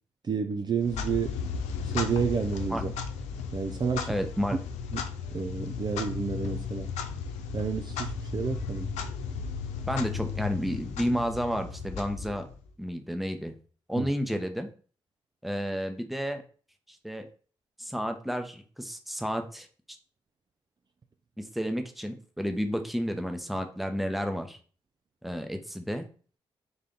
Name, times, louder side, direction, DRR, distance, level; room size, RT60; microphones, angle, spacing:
voice 1, 0.3-1.3 1.9-2.9 3.5-4.1 4.9-5.0 5.3-6.9 7.5-8.9 14.0-14.1, right 6 dB, 40° right, 5 dB, 0.4 m, -30 dB
Clock, 0.8-12.7, left 5 dB, 85° left, 0.4 m, -35 dB
voice 2, 4.1-4.6 9.8-12.4 12.8-13.5 13.9-14.7 15.4-16.4 16.9-17.3 17.8-19.7 21.4-24.6 25.2-26.1, equal, ahead, 6 dB, 0.8 m, -31 dB
3.9 x 2.7 x 3.5 m, 0.40 s
hypercardioid pair, 40°, 11 cm